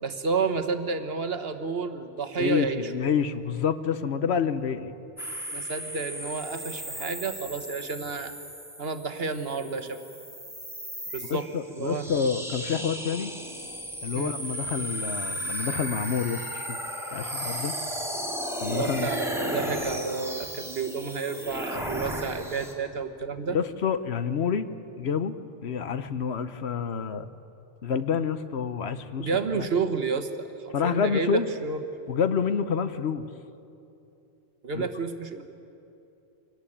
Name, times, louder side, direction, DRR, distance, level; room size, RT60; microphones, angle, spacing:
voice 1, 0.0-2.9 5.5-8.3 8.8-10.0 11.1-12.1 14.1-14.4 18.7-23.6 29.2-31.8 34.6-35.4, right 4 dB, 60° right, 8 dB, 1.4 m, -30 dB
voice 2, 2.4-4.9 11.3-13.3 14.0-16.8 17.1-17.7 18.6-19.1 23.5-24.7 25.0-25.4 25.6-27.3 27.8-29.3 29.5-29.7 30.7-31.5 32.1-33.3 34.7-34.9, left 6 dB, 70° left, 12 dB, 1.1 m, -28 dB
sound 1, 5.2-22.7, equal, ahead, 2.5 m, -35 dB
24.5 x 18.5 x 8.7 m, 2.8 s
omnidirectional pair, 1.2 m